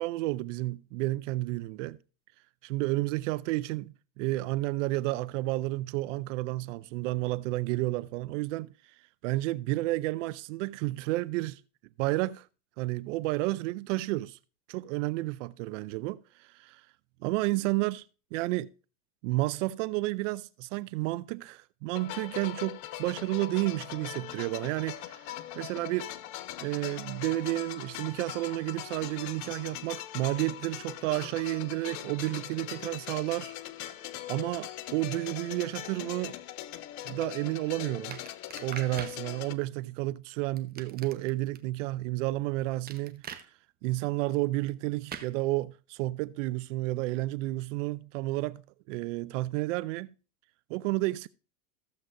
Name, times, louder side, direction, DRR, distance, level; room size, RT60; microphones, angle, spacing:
voice 1, 0.0-2.0 2.6-8.7 9.2-11.6 12.0-12.5 12.8-14.4 14.7-16.8 17.2-18.0 18.3-18.7 19.2-25.2 25.6-26.1 26.6-33.5 34.3-36.4 37.0-38.2 38.6-43.2 43.8-48.6 48.9-50.1 50.7-51.3, right 19 dB, 65° right, 0.5 m, -31 dB
sound 1, 21.9-39.5, left 13 dB, 45° left, 0.8 m, -41 dB
sound 2, 38.1-39.2 40.6-41.6 42.9-43.4 45.1-45.3, right 8 dB, 20° right, 1.0 m, -42 dB
14.5 x 7.5 x 2.6 m
supercardioid pair, 110°, 41 cm